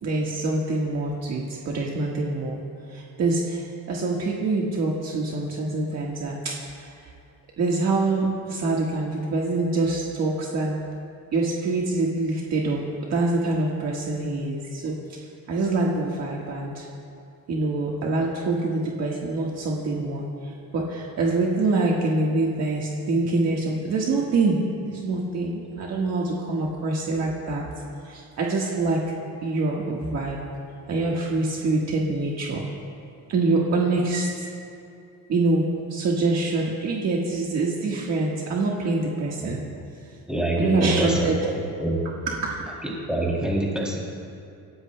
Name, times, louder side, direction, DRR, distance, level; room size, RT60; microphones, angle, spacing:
voice 1, 0.0-2.6 2.9-6.9 7.6-10.8 11.3-12.8 13.1-16.9 17.5-27.6 28.0-29.1 29.4-30.4 30.9-32.6 33.3-34.5 35.3-39.8 40.6-41.8 42.3-42.6, right 2 dB, 50° right, -3 dB, 1.5 m, -25 dB
voice 2, 40.3-41.5 41.8-41.9 43.1-44.0, right 1 dB, 5° right, -4 dB, 3.0 m, -25 dB
28.5 x 16.0 x 2.2 m, 2.5 s
cardioid pair, 170°, 34 cm